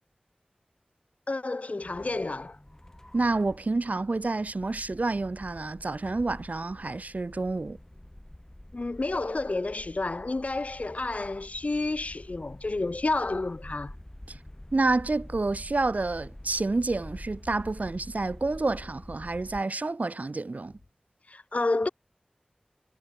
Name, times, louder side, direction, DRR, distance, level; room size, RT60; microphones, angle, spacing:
voice 1, 1.3-2.6 8.7-13.9 21.3-21.9, left 2 dB, 60° left, 0.7 m, -30 dB
sound 1, 1.8-19.6, left 1 dB, 20° left, 5.8 m, -47 dB
voice 2, 3.1-7.8 14.3-14.4 14.7-20.7, right 3 dB, 65° right, 1.0 m, -29 dB
wide cardioid pair, 50°, 3 cm